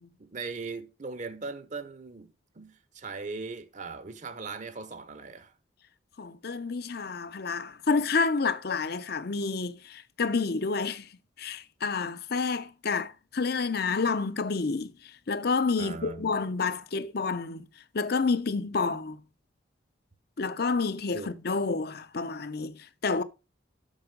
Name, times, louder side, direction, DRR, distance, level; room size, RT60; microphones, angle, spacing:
voice 1, 0.2-2.3 2.6-5.5 15.8-16.4 21.1-21.3, right 4 dB, 40° right, 0.7 m, -39 dB
voice 2, 6.2-11.1 11.4-14.9 15.3-17.7 17.9-19.2 20.4-23.2, left 4 dB, 55° left, 0.7 m, -29 dB
7.5 x 6.0 x 5.2 m
head